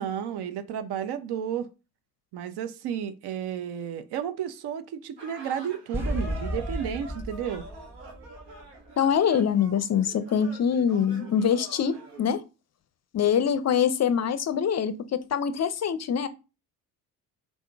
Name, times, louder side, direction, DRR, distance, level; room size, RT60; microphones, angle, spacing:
voice 1, 0.0-1.7 2.3-7.6, right 9 dB, 60° right, 0.8 m, -32 dB
sound 1, 5.2-12.3, right 2 dB, 75° right, 1.4 m, -45 dB
sound 2, 5.9-8.9, equal, 5° right, 1.2 m, -33 dB
voice 2, 9.0-12.4 13.1-14.9 15.3-16.3, left 8 dB, 35° left, 0.5 m, -24 dB
3.9 x 3.7 x 3.4 m
hypercardioid pair, 45°, 46 cm